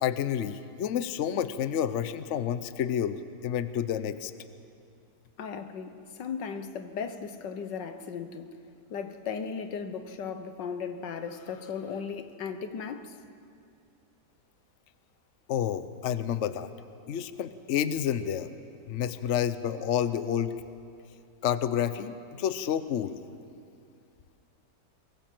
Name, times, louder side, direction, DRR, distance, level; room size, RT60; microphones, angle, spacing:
voice 1, 0.0-4.3 15.5-16.7 17.1-18.5 18.9-20.5 21.4-23.2, left 9 dB, 55° left, 1.0 m, -29 dB
voice 2, 5.4-8.6 8.9-13.2, left 6 dB, 90° left, 1.9 m, -36 dB
23.0 x 22.0 x 7.7 m
omnidirectional pair, 1.8 m